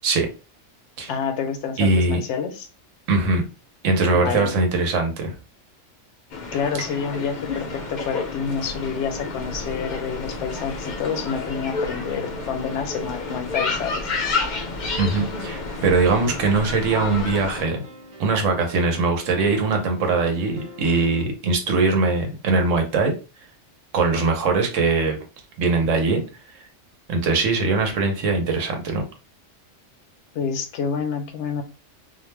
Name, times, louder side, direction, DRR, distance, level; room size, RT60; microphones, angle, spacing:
voice 1, 1.1-2.7 4.1-4.5 6.5-14.1 30.3-31.6, left 6 dB, 70° left, 6 dB, 0.8 m, -28 dB
voice 2, 1.8-2.2 3.1-3.5 3.8-5.3 15.0-17.8 18.2-23.2 23.9-25.2 25.6-26.2 27.1-29.0, right 3 dB, 80° right, 3 dB, 1.1 m, -21 dB
sound 1, 6.3-17.6, left 3 dB, 55° left, 0.5 m, -30 dB
sound 2, 7.0-21.2, right 1 dB, 35° right, 0.5 m, -44 dB
2.4 x 2.1 x 3.1 m, 0.32 s
omnidirectional pair, 1.3 m